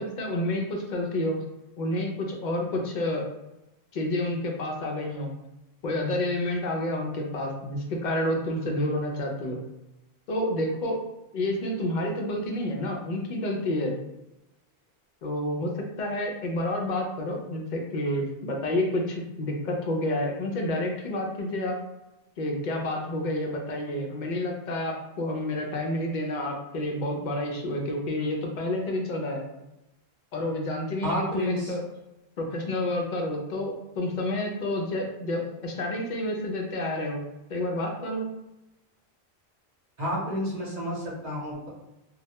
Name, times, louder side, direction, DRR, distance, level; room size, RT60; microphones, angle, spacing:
voice 1, 0.0-1.4 1.8-3.3 3.9-5.3 5.8-9.6 10.3-11.0 11.3-14.0 15.2-21.8 22.4-29.4 30.3-31.8 32.4-37.2 37.5-38.3, left 1 dB, 60° left, 1 dB, 0.5 m, -29 dB
voice 2, 31.0-31.7 40.0-41.7, equal, 45° right, -5 dB, 0.8 m, -30 dB
2.1 x 2.1 x 2.8 m, 0.93 s
omnidirectional pair, 1.1 m